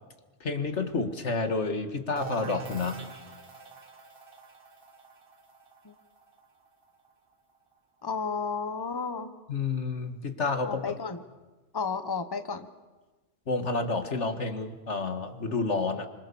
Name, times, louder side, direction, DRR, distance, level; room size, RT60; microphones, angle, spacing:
voice 1, 0.4-3.0 9.5-11.0 13.5-16.1, left 3 dB, 70° left, 7 dB, 2.2 m, -30 dB
sound 1, 2.2-7.7, right 5 dB, 50° right, 1.9 m, -44 dB
voice 2, 8.0-9.3 10.6-11.2 11.7-12.7, left 5 dB, 20° left, 9 dB, 1.1 m, -32 dB
27.5 x 25.5 x 7.1 m, 1.2 s
omnidirectional pair, 1.2 m